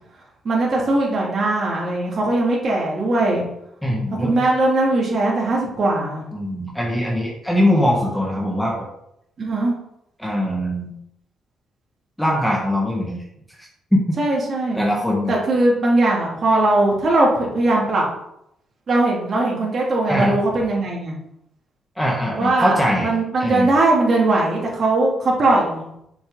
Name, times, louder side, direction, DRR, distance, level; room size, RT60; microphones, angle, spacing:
voice 1, 0.4-3.4 4.2-6.2 9.4-9.7 14.2-14.8 15.3-18.0 18.9-21.1 22.3-22.8 23.0-25.9, right 2 dB, 50° right, -4 dB, 3.1 m, -19 dB
voice 2, 3.8-4.4 6.3-8.9 10.2-10.9 12.2-13.2 13.6-14.0 14.7-15.3 20.1-20.4 22.0-23.1 23.4-23.7, equal, 5° left, -3 dB, 1.7 m, -21 dB
7.0 x 6.6 x 4.0 m, 0.77 s
cardioid pair, 90°, 0 cm